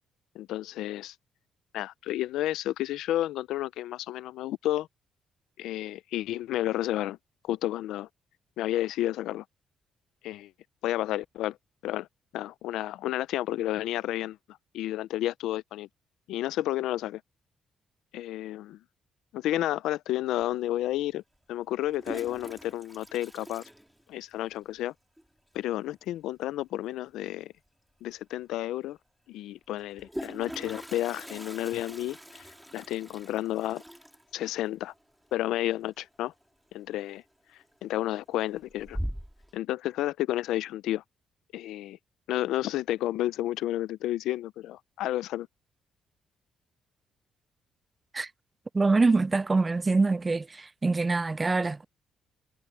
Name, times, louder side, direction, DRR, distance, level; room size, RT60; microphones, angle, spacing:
voice 1, 0.3-1.1 1.7-4.9 5.6-7.2 7.4-8.1 8.6-9.4 10.2-10.5 10.8-11.6 11.8-12.1 12.3-14.4 14.7-15.9 16.3-17.2 18.1-18.8 19.3-21.2 21.5-23.6 24.1-24.9 25.5-27.5 28.0-29.0 29.3-33.8 34.3-34.9 35.3-36.3 36.7-37.2 37.8-39.0 39.5-41.0 41.5-42.0 42.3-45.5, left 14 dB, 90° left, 0.5 m, -31 dB
Toilet flush, 20.4-20.5 21.7-24.5 24.8-24.9 25.2-25.3 25.5-25.9 27.7-27.8 28.1-28.2 29.7-36.4 36.7-37.2 37.6-38.1 38.5-39.5, equal, ahead, 2.4 m, -42 dB
voice 2, 48.7-51.8, right 3 dB, 25° right, 0.3 m, -25 dB
cardioid pair, 90°, 0 cm